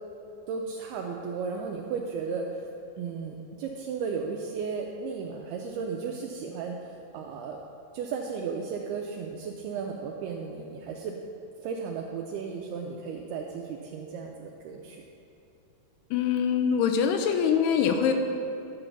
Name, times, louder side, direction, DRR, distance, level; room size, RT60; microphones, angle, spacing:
voice 1, 0.5-2.5 3.0-6.8 7.1-7.6 7.9-11.2 11.6-15.0, right 5 dB, 85° right, 1 dB, 2.3 m, -34 dB
voice 2, 16.1-18.1, left 7 dB, 80° left, 6 dB, 2.5 m, -24 dB
11.5 x 5.4 x 7.1 m, 2.6 s
omnidirectional pair, 5.1 m